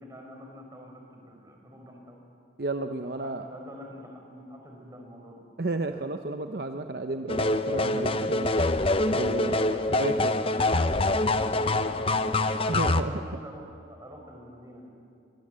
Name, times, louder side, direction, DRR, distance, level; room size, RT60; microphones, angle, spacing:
voice 1, 0.0-2.2 3.0-5.4 9.3-10.0 10.3-12.4 13.1-13.6 13.9-14.9, equal, 15° right, 1 dB, 4.2 m, -46 dB
voice 2, 2.6-3.4 5.6-8.5 9.1-9.5 9.9-10.4 12.7-13.2, right 2 dB, 55° right, 6 dB, 0.8 m, -32 dB
sound 1, 7.3-13.0, left 2 dB, 30° left, 0.7 m, -25 dB
24.5 x 21.5 x 7.6 m, 2.5 s
head